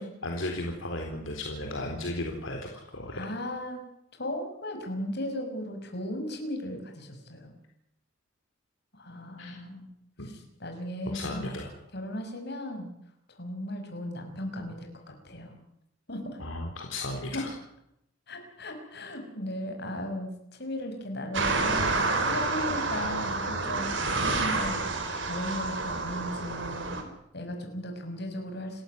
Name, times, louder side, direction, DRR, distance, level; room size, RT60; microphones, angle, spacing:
voice 1, 0.2-3.2 9.4-9.6 10.2-10.3 11.1-11.7 16.4-17.5, left 1 dB, 70° left, 1 dB, 4.0 m, -35 dB
voice 2, 3.2-3.8 4.2-7.5 8.9-9.9 10.6-11.5 11.9-12.9 13.3-14.9 15.2-15.6 16.1-16.4 17.3-17.4 18.3-23.9 24.2-24.8 25.2-27.0 27.3-28.8, left 1 dB, 55° left, 4 dB, 6.3 m, -36 dB
sound 1, 21.3-27.0, right 3 dB, 65° right, 4.7 m, -29 dB
29.5 x 14.5 x 9.7 m, 0.80 s
head